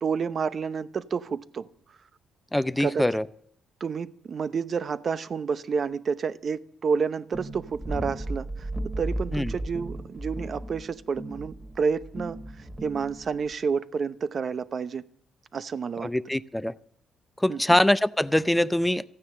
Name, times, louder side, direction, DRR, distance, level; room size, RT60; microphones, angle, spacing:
voice 1, 0.0-1.7 2.8-3.1 3.8-8.7 9.0-12.4 12.8-15.0 15.5-16.1 17.5-17.8, right 5 dB, 50° right, 15 dB, 0.8 m, -29 dB
voice 2, 2.5-3.3 9.3-9.5 16.0-16.7 17.4-19.0, left 1 dB, 5° left, 15 dB, 0.6 m, -23 dB
sound 1, 7.3-13.5, right 1 dB, 20° right, 2.6 m, -35 dB
14.5 x 9.7 x 8.6 m, 0.66 s
cardioid pair, 90°, 0 cm